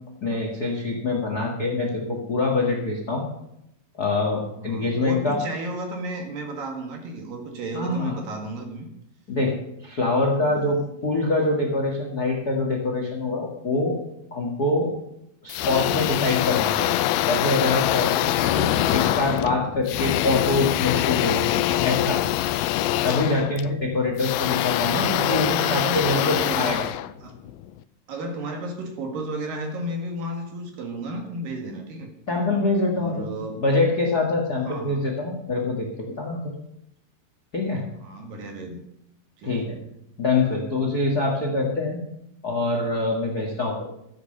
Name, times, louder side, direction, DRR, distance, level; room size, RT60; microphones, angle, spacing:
voice 1, 0.2-3.2 3.9-5.4 7.7-8.2 9.3-9.5 9.8-10.8 11.0-14.0 14.3-14.9 15.4-16.9 17.3-22.2 23.0-26.9 32.3-33.3 33.6-35.9 36.2-36.5 37.5-37.8 39.4-39.8 40.2-42.0 42.4-43.9, left 2 dB, 70° left, 2 dB, 0.9 m, -24 dB
voice 2, 4.5-8.9 10.4-10.8 18.3-19.2 24.9-26.8 27.2-27.4 28.1-32.1 32.9-33.6 34.6-35.1 38.0-38.8 39.4-39.7, right 1 dB, 60° right, 3 dB, 3.2 m, -33 dB
sound 1, 15.5-27.7, left 14 dB, 90° left, 2.2 m, -24 dB
15.0 x 8.1 x 6.6 m, 0.81 s
omnidirectional pair, 5.0 m